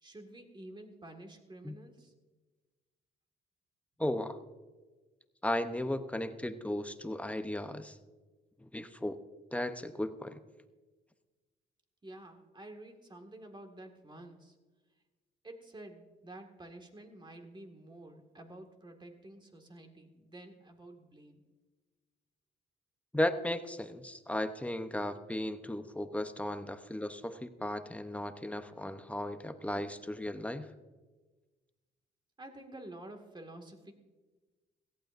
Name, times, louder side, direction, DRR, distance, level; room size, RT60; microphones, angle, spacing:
voice 1, 0.0-2.1 12.0-14.6 15.4-21.4 32.4-33.9, right 1 dB, 25° right, 5 dB, 1.9 m, -50 dB
voice 2, 4.0-4.4 5.4-8.0 8.6-9.2 9.5-10.4 23.1-30.7, left 1 dB, 5° left, 9 dB, 0.8 m, -35 dB
17.0 x 15.0 x 2.6 m, 1.3 s
cardioid pair, 90°, 20 cm